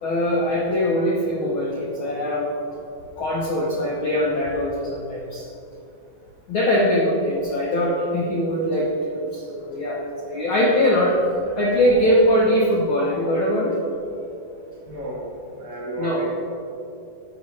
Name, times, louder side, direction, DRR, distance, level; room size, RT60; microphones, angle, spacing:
voice 1, 0.0-2.5 3.2-5.5 6.5-11.2 11.6-13.8 16.0-16.2, equal, 70° left, -3 dB, 1.2 m, -22 dB
voice 2, 14.0-16.4, right 1 dB, 70° right, -5 dB, 3.2 m, -34 dB
14.0 x 6.1 x 3.2 m, 2.7 s
omnidirectional pair, 3.5 m